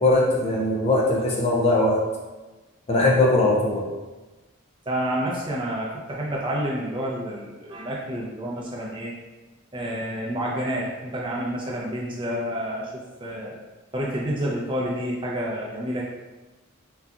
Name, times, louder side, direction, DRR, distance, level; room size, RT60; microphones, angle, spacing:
voice 1, 0.0-2.0 2.9-3.9, left 2 dB, 30° left, -2 dB, 0.4 m, -20 dB
voice 2, 4.9-9.1 9.7-13.5 13.9-16.0, equal, 25° right, -4 dB, 0.5 m, -29 dB
3.9 x 2.3 x 2.4 m, 1.2 s
head